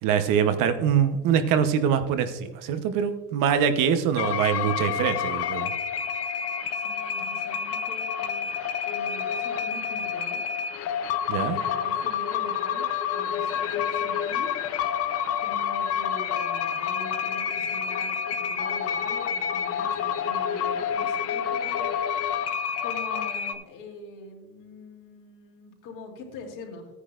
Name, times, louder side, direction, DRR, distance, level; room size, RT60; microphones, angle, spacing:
voice 1, 0.0-5.7 11.3-11.6, right 8 dB, 65° right, 8 dB, 1.0 m, -24 dB
sound 1, 4.2-23.5, left 7 dB, 45° left, 0.8 m, -28 dB
voice 2, 6.7-8.6 8.8-10.4 11.4-14.5 15.4-22.1 22.8-26.9, left 2 dB, 60° left, 0 dB, 2.9 m, -43 dB
14.5 x 9.8 x 2.5 m, 1.1 s
cardioid pair, 140°, 35 cm